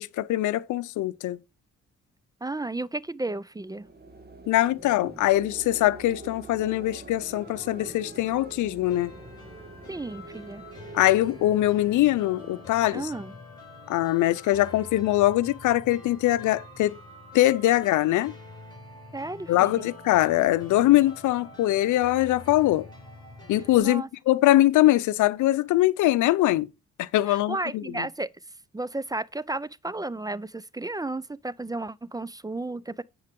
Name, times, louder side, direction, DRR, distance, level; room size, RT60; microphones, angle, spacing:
voice 1, 0.0-1.4 4.5-9.1 10.9-13.1 13.9-17.0 17.3-18.3 19.5-22.9 23.5-26.7 27.0-28.1, left 15 dB, 85° left, 0.6 m, -22 dB
voice 2, 2.4-3.9 9.9-10.7 12.9-13.3 19.1-19.9 23.8-24.1 27.3-28.3 28.7-33.0, right 2 dB, 15° right, 0.4 m, -33 dB
sound 1, 3.6-12.9, right 3 dB, 35° right, 2.1 m, -45 dB
sound 2, 8.8-23.8, left 3 dB, 15° left, 5.1 m, -46 dB
9.7 x 4.7 x 5.2 m
cardioid pair, 60°, 29 cm